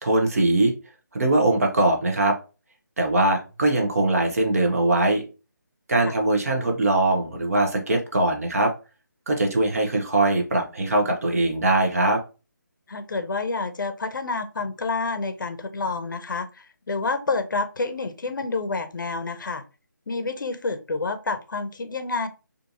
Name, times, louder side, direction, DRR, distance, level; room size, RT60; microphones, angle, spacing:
voice 1, 0.0-0.7 1.1-2.4 3.0-5.2 5.9-8.7 9.3-12.2, right 2 dB, 50° right, 0.6 m, -21 dB
voice 2, 12.9-19.6 20.1-22.3, left 3 dB, 80° left, 0.5 m, -28 dB
2.7 x 2.5 x 2.5 m
figure-of-eight pair, 170°, 11 cm